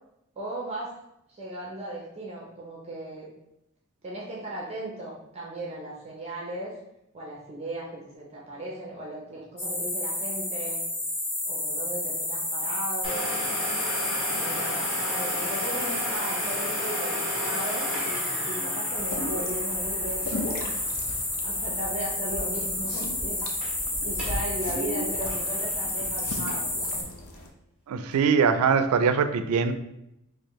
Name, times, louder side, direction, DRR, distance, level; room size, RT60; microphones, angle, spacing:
voice 1, 0.4-0.9 1.3-3.3 4.0-6.7 7.1-10.8 11.5-13.4 14.1-17.9 18.4-20.8 21.4-23.4 23.7-26.9, right 1 dB, 30° right, -4 dB, 0.6 m, -37 dB
sound 1, 9.6-27.0, left 1 dB, 50° left, 1.4 m, -30 dB
Domestic sounds home sounds, 13.0-22.5 22.7-22.8 23.4-23.8 24.1-24.5 24.8-26.9 27.3-27.4 28.1-28.2, left 1 dB, 5° right, 1.0 m, -36 dB
sound 2, 18.9-27.5, left 1 dB, 70° left, 0.5 m, -37 dB
voice 2, 27.9-29.7, right 6 dB, 85° right, 9 dB, 0.4 m, -22 dB
4.2 x 2.4 x 3.0 m, 0.82 s
head